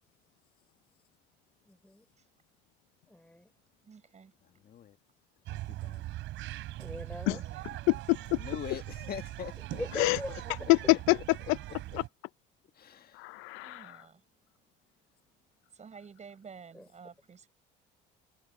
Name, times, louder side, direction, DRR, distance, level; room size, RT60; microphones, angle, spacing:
voice 1, 1.7-2.1 3.1-3.5 6.8-7.4 9.7-10.6 16.7-16.9, left 1 dB, 5° left, 5.2 m, -41 dB
voice 2, 3.8-4.3 5.7-5.8 7.3-7.8 13.6-14.2 15.7-17.5, right 6 dB, 35° right, 7.3 m, -51 dB
voice 3, 4.5-5.0 5.5-6.0 8.4-9.8 10.3-10.4 12.7-13.2, left 9 dB, 50° left, 1.7 m, -43 dB
sound 1, 5.5-12.1, right 16 dB, 75° right, 3.6 m, -41 dB
voice 4, 7.9-8.4 10.0-10.2 10.7-11.4 13.2-14.0, left 25 dB, 85° left, 0.5 m, -26 dB
supercardioid pair, 90°, 20 cm